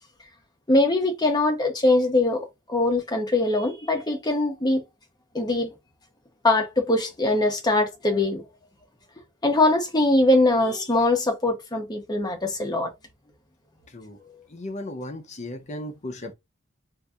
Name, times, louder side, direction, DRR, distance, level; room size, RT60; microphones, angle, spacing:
voice 1, 0.7-4.8 5.3-5.7 6.4-8.4 9.4-12.9, left 2 dB, 20° left, 0.9 m, -22 dB
voice 2, 14.5-16.3, left 1 dB, 35° left, 0.7 m, -35 dB
3.9 x 2.7 x 2.4 m
head